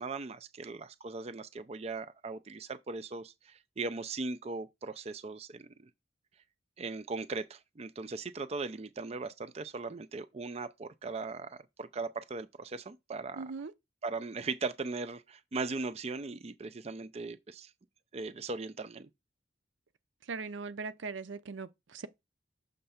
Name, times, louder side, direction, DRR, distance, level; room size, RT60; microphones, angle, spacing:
voice 1, 0.0-5.9 6.8-13.5 14.0-17.7 18.1-19.1, right 3 dB, 35° right, 0.4 m, -39 dB
voice 2, 13.4-13.7 20.3-22.1, right 4 dB, 90° right, 0.6 m, -40 dB
6.6 x 3.3 x 5.6 m
head